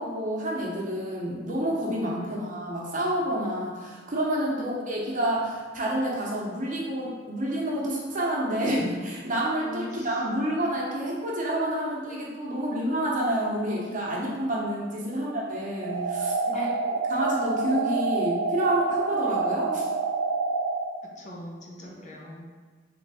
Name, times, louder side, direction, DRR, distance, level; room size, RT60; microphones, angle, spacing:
voice 1, 0.0-16.7 17.1-19.8 21.8-22.0, right 1 dB, 45° right, -4 dB, 0.9 m, -29 dB
voice 2, 9.6-10.2 12.7-12.8 15.1-15.4 16.5-16.7 21.0-22.5, left 1 dB, 40° left, -2 dB, 0.7 m, -41 dB
sound 1, 15.8-20.8, right 4 dB, 80° right, 0.3 m, -27 dB
4.0 x 3.3 x 3.4 m, 1.5 s
head